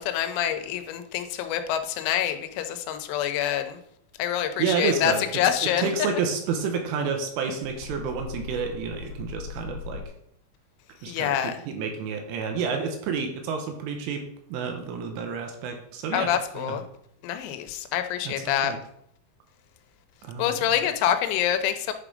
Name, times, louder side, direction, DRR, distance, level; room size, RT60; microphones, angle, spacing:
voice 1, 0.0-3.8 4.2-5.9 11.1-11.6 16.1-16.8 17.2-18.7 20.4-21.9, left 10 dB, 90° left, 8 dB, 3.5 m, -26 dB
voice 2, 4.6-5.4 5.8-10.0 11.0-16.8 18.2-18.8 20.2-20.6, right 5 dB, 75° right, 4 dB, 3.5 m, -30 dB
sound 1, 5.0-10.0, left 6 dB, 55° left, 2.4 m, -42 dB
10.5 x 4.9 x 5.0 m, 0.72 s
omnidirectional pair, 5.9 m